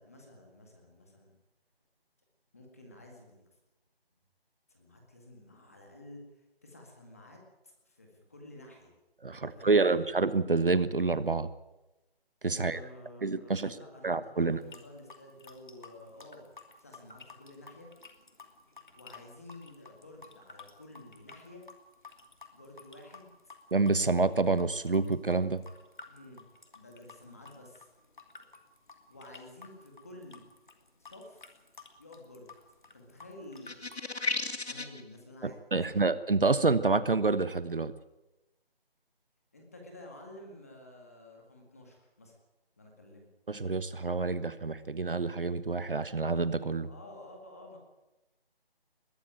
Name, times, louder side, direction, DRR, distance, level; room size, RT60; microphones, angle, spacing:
voice 1, 0.0-1.3 2.5-3.5 4.7-6.2 6.6-7.4 7.6-8.9 9.3-10.1 12.5-16.4 16.8-17.9 19.0-21.7 22.5-23.3 26.1-26.5 26.7-27.9 29.1-30.4 31.0-31.6 32.0-32.5 32.9-33.9 34.5-36.0 39.5-42.4 42.8-43.3 46.8-47.8, left 1 dB, 15° left, 1 dB, 2.0 m, -51 dB
voice 2, 9.2-11.5 12.4-12.8 13.2-13.8 14.0-14.6 23.7-25.6 35.4-37.9 43.5-46.9, right 3 dB, 60° right, 14 dB, 1.2 m, -28 dB
sound 1, 14.5-34.0, left 4 dB, 50° left, 2.8 m, -53 dB
sound 2, 33.7-35.0, left 3 dB, 90° left, 2.5 m, -33 dB
21.5 x 14.0 x 9.0 m, 1.0 s
figure-of-eight pair, 180°, 31 cm